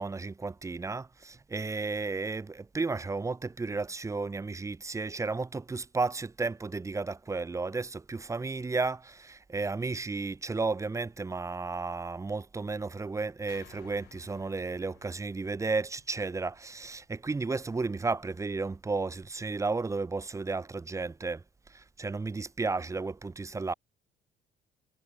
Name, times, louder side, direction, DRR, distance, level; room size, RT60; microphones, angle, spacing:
voice 1, 0.0-21.4 21.7-23.7, right 3 dB, 20° right, 1.4 m, -33 dB
sound 1, 13.5-17.8, left 20 dB, 90° left, 5.0 m, -59 dB
cardioid pair, 110°, 17 cm